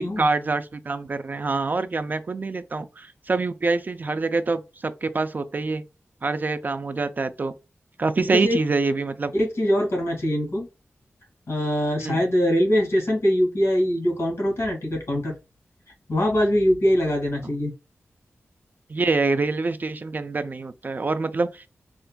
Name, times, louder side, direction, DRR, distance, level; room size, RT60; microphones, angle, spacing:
voice 1, 0.0-5.8 6.2-7.5 8.0-9.3 12.0-12.2 18.9-21.7, right 3 dB, 40° right, 0.3 m, -25 dB
voice 2, 9.3-10.7 11.5-15.3 16.1-17.7, equal, 65° left, 2.0 m, -22 dB
4.3 x 2.3 x 2.2 m
wide cardioid pair, 110°, 5 cm